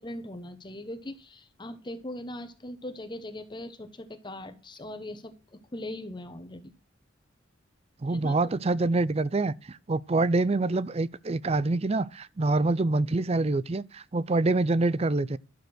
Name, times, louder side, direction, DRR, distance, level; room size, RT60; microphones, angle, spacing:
voice 1, 0.0-6.7 8.1-8.5, left 1 dB, 25° left, 1.1 m, -40 dB
voice 2, 8.0-15.4, right 2 dB, 30° right, 0.5 m, -26 dB
12.0 x 6.8 x 6.2 m
head